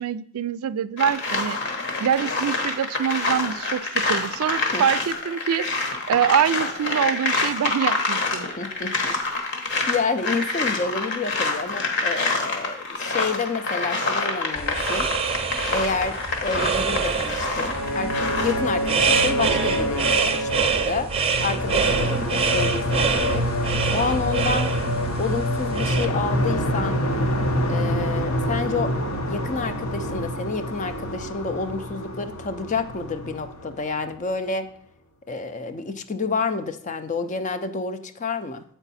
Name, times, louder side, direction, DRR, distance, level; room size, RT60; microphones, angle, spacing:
voice 1, 0.0-1.6 2.0-8.5, right 8 dB, 85° right, 17 dB, 0.3 m, -25 dB
sound 1, 1.0-18.5, left 3 dB, 55° left, 1.1 m, -27 dB
voice 2, 8.6-9.2 9.9-15.1 15.7-16.1 16.4-21.1 21.4-23.4 23.9-24.7 25.2-27.0 27.6-28.9 29.3-34.7 35.3-38.6, left 4 dB, 35° left, 10 dB, 0.5 m, -29 dB
sound 2, 14.6-26.1, right 5 dB, 25° right, 0.6 m, -26 dB
sound 3, 17.4-34.3, equal, 80° left, 1.0 m, -26 dB
7.9 x 4.5 x 4.1 m, 0.68 s
head